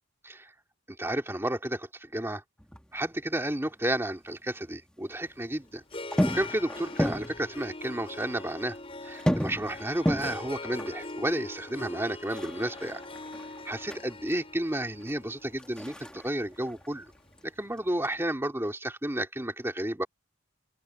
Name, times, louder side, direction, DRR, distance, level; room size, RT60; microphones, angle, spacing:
voice 1, 0.9-2.4 2.9-5.8 6.2-8.8 9.0-13.0 13.6-17.1 17.4-20.1, right 1 dB, 10° right, 2.4 m, -32 dB
sound 1, 2.6-4.3 4.5-5.5 5.9-7.9 8.2-8.3 8.6-14.4 14.8-17.4 17.7-18.2, equal, 5° left, 1.6 m, -33 dB
Harp, 5.2-17.4, left 2 dB, 25° left, 6.2 m, -42 dB
open air
head